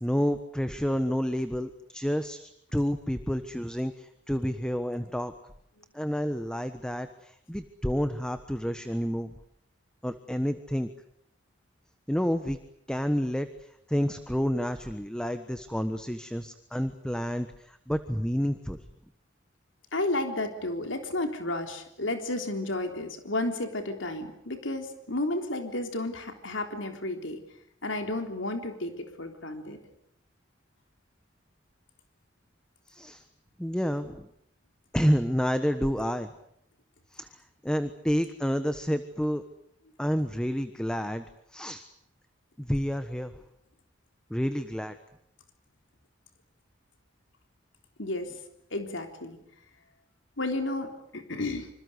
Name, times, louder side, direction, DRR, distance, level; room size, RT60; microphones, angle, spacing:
voice 1, 0.0-5.3 5.9-9.3 10.0-10.9 12.1-12.6 12.9-18.8 32.9-33.2 33.6-34.3 34.9-36.3 37.1-39.4 40.0-41.2 41.5-41.9 42.6-43.4 44.3-45.0, equal, 5° left, 9 dB, 1.3 m, -29 dB
voice 2, 19.9-27.4 27.8-29.8 48.0-48.3 48.7-49.4 50.4-51.7, left 2 dB, 85° left, 5 dB, 3.6 m, -32 dB
26.5 x 26.0 x 8.2 m, 0.74 s
head